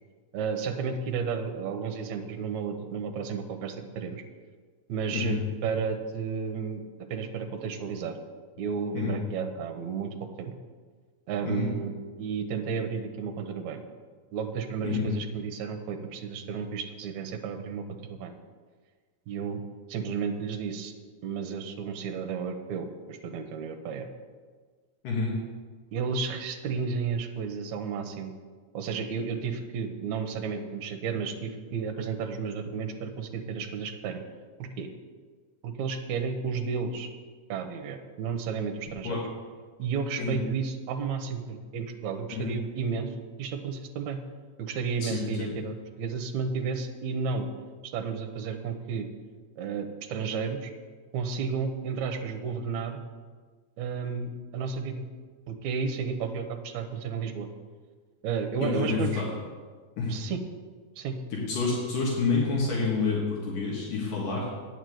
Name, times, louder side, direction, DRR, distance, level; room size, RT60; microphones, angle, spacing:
voice 1, 0.3-4.2 4.9-6.8 7.1-8.2 8.6-10.5 11.3-11.9 12.2-13.8 14.3-18.3 19.3-19.6 19.9-20.9 21.2-24.1 25.9-28.3 28.7-34.2 34.6-34.9 35.6-37.1 37.5-39.2 39.8-43.1 43.4-44.2 44.6-47.5 47.8-49.1 49.6-50.7 51.1-53.0 53.8-55.0 55.5-57.5 58.2-59.2 60.1-60.4 61.0-61.2, right 5 dB, 70° right, 5 dB, 2.1 m, -32 dB
voice 2, 45.0-45.5 58.6-59.3 60.0-60.2 61.3-64.5, left 4 dB, 80° left, -4 dB, 3.4 m, -28 dB
9.0 x 6.9 x 8.0 m, 1.5 s
omnidirectional pair, 3.7 m